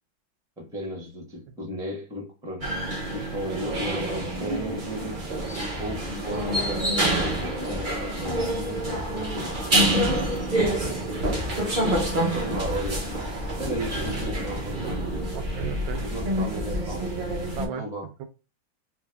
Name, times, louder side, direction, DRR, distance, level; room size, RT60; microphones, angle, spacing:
voice 1, 0.6-2.7 3.1-5.3 5.8-9.5 12.3-13.1 13.6-15.3 16.0-17.1 17.8-18.1, right 1 dB, ahead, 0.9 m, -35 dB
sound 1, 2.6-17.7, right 1 dB, 50° right, 0.5 m, -27 dB
voice 2, 10.3-11.1 15.3-16.0 17.6-17.9 18.2-18.3, right 8 dB, 75° right, 1.3 m, -36 dB
3.5 x 2.7 x 3.4 m
omnidirectional pair, 2.2 m